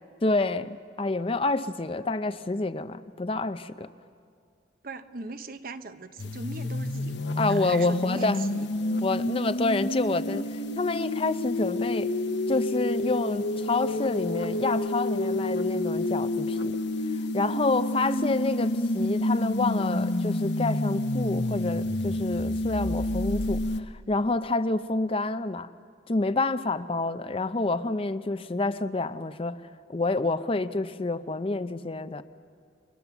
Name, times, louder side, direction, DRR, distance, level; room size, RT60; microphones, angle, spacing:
voice 1, 0.2-3.9 7.4-8.4 9.0-12.1 12.5-16.8 17.3-25.7 26.1-32.2, left 3 dB, 30° left, 11 dB, 0.5 m, -28 dB
voice 2, 4.8-8.7, right 3 dB, 50° right, 9 dB, 1.0 m, -39 dB
sound 1, 6.2-23.8, left 1 dB, 65° left, 1.1 m, -29 dB
30.0 x 24.0 x 7.1 m, 2.2 s
head